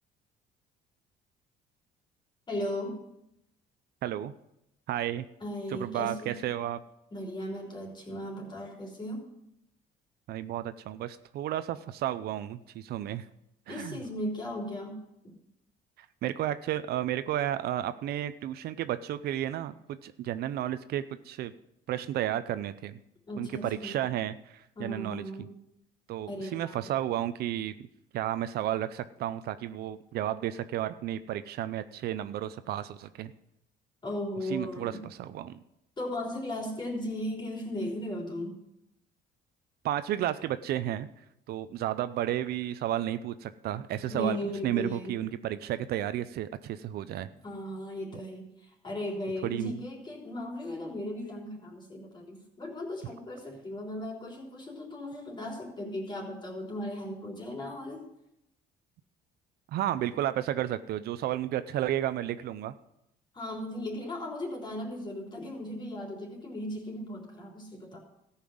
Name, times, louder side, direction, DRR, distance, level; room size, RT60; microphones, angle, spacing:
voice 1, 2.5-3.0 5.4-6.5 7.1-9.3 13.7-15.4 23.3-24.0 24.8-25.5 26.3-26.9 34.0-35.1 36.0-38.6 44.1-45.2 47.4-58.1 63.3-68.0, left 1 dB, 25° left, 0 dB, 3.6 m, -37 dB
voice 2, 4.0-4.3 4.9-5.3 5.7-6.8 10.3-13.3 13.7-14.0 16.2-21.5 21.9-23.0 23.4-25.2 26.1-27.7 28.1-33.3 34.5-35.6 39.8-41.1 41.5-44.4 44.6-47.3 49.4-49.8 59.7-62.7, right 12 dB, 70° right, 13 dB, 0.6 m, -32 dB
14.0 x 5.7 x 7.8 m, 0.82 s
cardioid pair, 110°, 17 cm